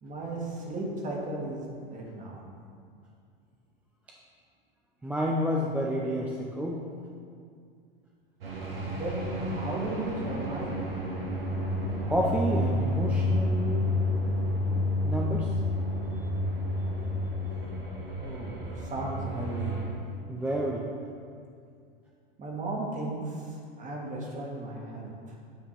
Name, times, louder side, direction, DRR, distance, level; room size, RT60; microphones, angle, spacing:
voice 1, 0.0-1.6 1.9-2.5 8.7-10.8 18.2-19.8 22.4-23.5 23.8-25.1, right 2 dB, 25° right, -1 dB, 1.4 m, -35 dB
voice 2, 5.0-6.9 12.1-13.9 15.0-15.5 20.3-20.8, equal, 5° right, -2 dB, 0.4 m, -29 dB
sound 1, 8.4-19.8, left 1 dB, 90° right, 1.5 m, -30 dB
9.1 x 3.4 x 4.4 m, 2.3 s
hypercardioid pair, 105°, 29 cm